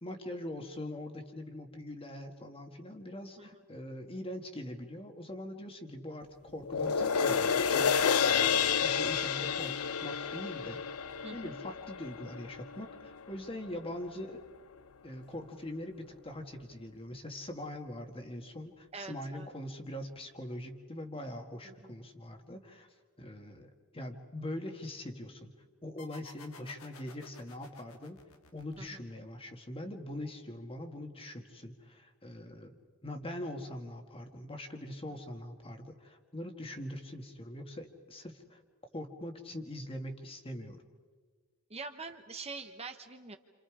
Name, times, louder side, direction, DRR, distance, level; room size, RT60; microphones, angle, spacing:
voice 1, 0.0-10.9 11.3-14.4 15.0-22.9 23.2-25.5 25.8-28.2 28.5-32.7 33.0-38.6 38.9-40.8, left 1 dB, 25° left, 4 dB, 1.8 m, -42 dB
sound 1, 6.6-13.2 13.7-13.8, left 6 dB, 90° left, 0.6 m, -30 dB
voice 2, 11.2-11.5 13.7-13.8 18.9-19.5 21.6-21.9 28.8-29.0 41.7-43.4, right 4 dB, 30° right, 6 dB, 1.1 m, -45 dB
sound 2, 26.0-29.3, left 3 dB, 70° left, 1.6 m, -55 dB
29.0 x 27.5 x 5.0 m, 1.5 s
head